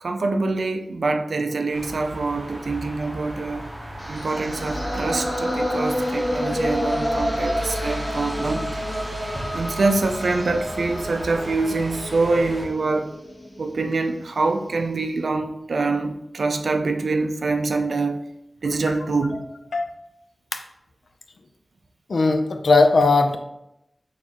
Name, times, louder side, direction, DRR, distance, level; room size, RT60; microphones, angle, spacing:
voice 1, 0.0-3.7 4.1-9.0 9.5-13.1 13.6-18.2 18.6-19.4, right 3 dB, 80° right, 6 dB, 0.4 m, -25 dB
sound 1, 1.7-12.7, equal, 20° right, 0.9 m, -35 dB
sound 2, 4.0-14.1, equal, 10° left, 1.2 m, -29 dB
voice 2, 22.1-23.4, left 3 dB, 80° left, 6 dB, 0.4 m, -18 dB
4.2 x 3.1 x 2.9 m, 0.84 s
wide cardioid pair, 100°, 0 cm